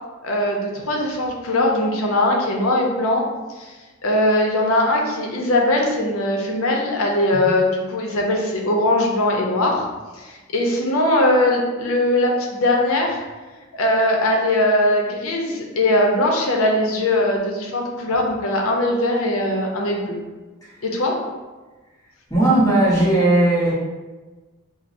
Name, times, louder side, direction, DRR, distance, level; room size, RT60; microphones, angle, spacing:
voice 1, 0.2-3.2 3.6-3.7 4.0-9.9 10.1-13.2 13.7-20.2 20.8-21.1, left 1 dB, 75° left, 0 dB, 0.6 m, -20 dB
voice 2, 22.3-23.7, right 1 dB, 15° left, -8 dB, 0.8 m, -16 dB
4.3 x 2.0 x 2.5 m, 1.2 s
head